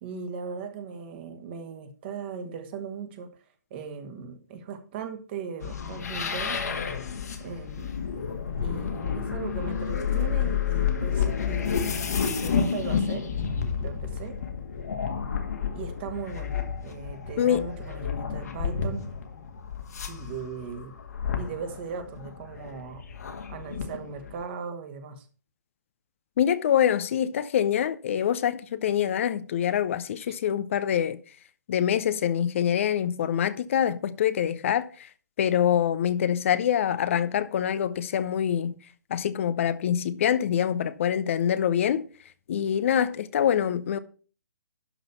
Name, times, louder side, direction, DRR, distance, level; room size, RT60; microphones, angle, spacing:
voice 1, 0.0-3.3 3.7-6.8 7.4-7.9 8.6-11.8 12.4-14.4 15.7-16.5 16.8-19.1 20.1-21.0 21.4-23.0 23.5-25.3, right 6 dB, 35° right, 1.8 m, -38 dB
sound 1, 5.6-24.4, left 7 dB, 65° left, 1.9 m, -30 dB
voice 2, 26.4-31.2 31.7-35.1 35.4-38.8 39.1-42.1 42.5-44.0, left 9 dB, 45° left, 0.7 m, -25 dB
11.5 x 4.1 x 6.8 m
figure-of-eight pair, 130°, 9 cm